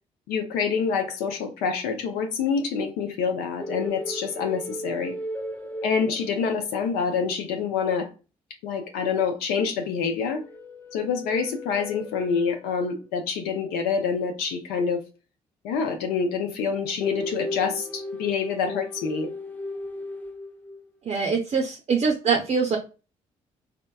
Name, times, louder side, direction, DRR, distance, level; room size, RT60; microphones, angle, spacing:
voice 1, 0.3-5.2 5.8-8.1 8.6-10.4 10.9-15.0 15.6-19.3, left 6 dB, 85° left, 0.5 m, -26 dB
sound 1, 3.6-6.8 10.3-12.9 17.0-20.8, left 1 dB, 10° left, 0.5 m, -36 dB
voice 2, 21.1-22.8, right 5 dB, 45° right, 0.5 m, -23 dB
2.9 x 2.1 x 2.2 m
supercardioid pair, 55°, 15 cm